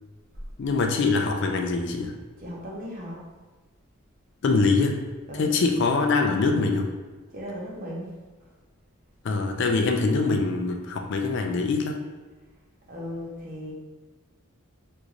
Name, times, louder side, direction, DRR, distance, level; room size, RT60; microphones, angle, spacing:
voice 1, 0.6-2.1 4.4-5.0 5.3-6.9 9.2-12.0, left 3 dB, 50° left, 3 dB, 0.3 m, -23 dB
voice 2, 2.4-3.2 5.3-5.5 7.3-8.1 12.9-13.7, equal, 40° right, -3 dB, 0.7 m, -36 dB
3.0 x 2.5 x 3.7 m, 1.3 s
head